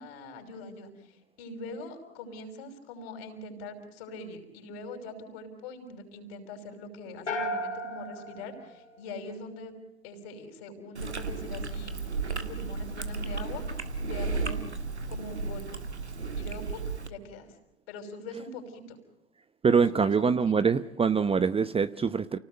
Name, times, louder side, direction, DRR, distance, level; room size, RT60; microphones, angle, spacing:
voice 1, 0.0-9.7 10.0-13.6 14.1-14.6 15.1-15.8 16.4-17.5 17.9-19.0 19.9-20.5, left 2 dB, 60° left, 5.9 m, -43 dB
sound 1, 7.3-9.5, equal, 85° left, 3.5 m, -35 dB
Chewing mastication, 11.0-17.1, right 4 dB, 85° right, 1.8 m, -34 dB
voice 2, 19.6-22.4, right 5 dB, 15° right, 0.9 m, -24 dB
29.5 x 18.5 x 7.9 m
figure-of-eight pair, 75°, 33 cm